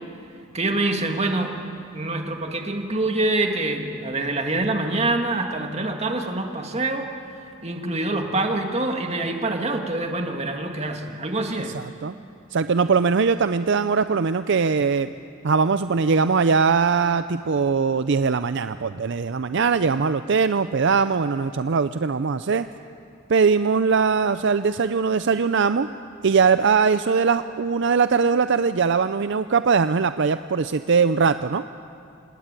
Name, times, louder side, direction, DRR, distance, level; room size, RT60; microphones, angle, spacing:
voice 1, 0.5-1.6 1.9-7.1 7.6-11.7, right 2 dB, 30° right, 4 dB, 2.1 m, -25 dB
voice 2, 11.7-12.1 12.5-15.1 15.4-22.7 23.3-25.9 26.2-31.6, right 5 dB, 60° right, 11 dB, 0.5 m, -21 dB
26.5 x 19.5 x 9.0 m, 2.5 s
head